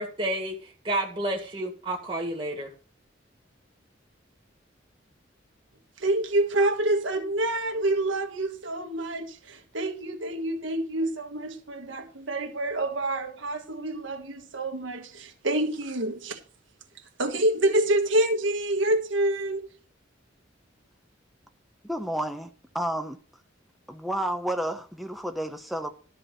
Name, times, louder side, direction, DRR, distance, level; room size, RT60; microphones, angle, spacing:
voice 1, 0.0-2.7, right 1 dB, 30° right, 1.9 m, -30 dB
voice 2, 6.0-16.4 17.2-19.7, right 1 dB, 90° right, 1.5 m, -27 dB
voice 3, 21.8-23.2 23.9-25.9, right 1 dB, ahead, 0.9 m, -31 dB
12.5 x 4.7 x 6.5 m
head